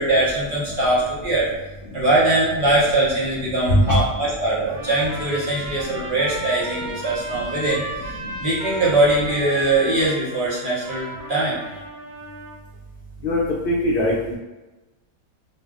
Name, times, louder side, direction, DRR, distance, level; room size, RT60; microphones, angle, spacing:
voice 1, 0.0-1.4 1.9-7.8 8.4-11.6, right 2 dB, 50° right, -7 dB, 0.7 m, -21 dB
Trumpet, 4.7-12.6, right 1 dB, 85° right, 0.4 m, -35 dB
voice 2, 13.2-14.4, left 1 dB, 80° left, -4 dB, 0.4 m, -21 dB
2.6 x 2.0 x 3.4 m, 1.1 s
omnidirectional pair, 1.5 m